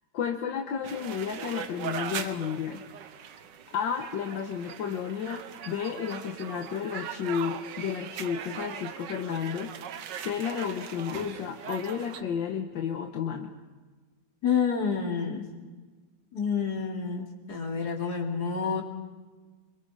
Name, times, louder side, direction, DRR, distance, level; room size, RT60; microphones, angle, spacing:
voice 1, 0.1-2.8 3.7-9.7 10.1-13.5, left 7 dB, 80° left, 4 dB, 1.8 m, -32 dB
sound 1, 0.8-12.2, right 8 dB, 75° right, 1.6 m, -40 dB
voice 2, 14.4-15.4 16.3-18.8, left 6 dB, 55° left, -1 dB, 3.3 m, -28 dB
26.0 x 23.5 x 4.9 m, 1.3 s
omnidirectional pair, 2.0 m